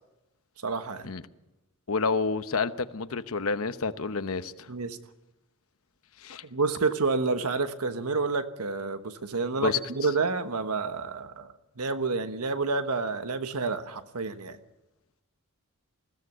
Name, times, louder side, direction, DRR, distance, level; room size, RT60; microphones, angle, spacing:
voice 1, 0.6-1.1 4.7-5.0 6.5-14.6, right 4 dB, 90° right, 9 dB, 1.2 m, -29 dB
voice 2, 1.9-4.7 6.2-6.4 9.6-9.8, left 4 dB, 70° left, 11 dB, 0.9 m, -29 dB
21.0 x 16.0 x 8.0 m, 0.97 s
head